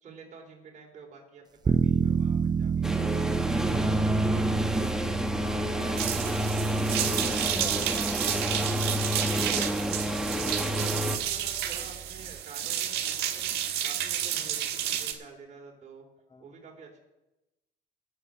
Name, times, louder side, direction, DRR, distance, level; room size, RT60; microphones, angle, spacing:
voice 1, 0.0-4.9 5.5-6.9 10.7-13.5 13.8-16.1 16.4-17.0, right 5 dB, 45° right, 0 dB, 3.6 m, -49 dB
sound 1, 1.6-12.4, right 6 dB, 25° right, 0.5 m, -32 dB
sound 2, 2.8-11.2, equal, 5° right, 1.1 m, -29 dB
sound 3, 6.0-15.1, right 11 dB, 75° right, 1.4 m, -31 dB
voice 2, 7.2-8.9 16.3-16.6, left 3 dB, 25° left, 5 dB, 1.0 m, -45 dB
18.5 x 7.1 x 5.0 m, 0.97 s
cardioid pair, 110°, 17 cm